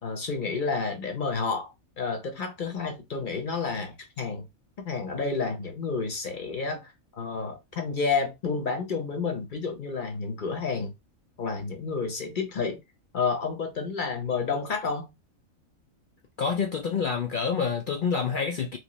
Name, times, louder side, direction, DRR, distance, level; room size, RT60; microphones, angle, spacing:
voice 1, 0.0-4.5 4.8-10.9 11.4-12.8 13.1-15.1, left 4 dB, 45° left, 0.8 m, -30 dB
voice 2, 16.4-18.8, left 6 dB, 75° left, 0.4 m, -27 dB
3.1 x 2.9 x 3.0 m
omnidirectional pair, 1.4 m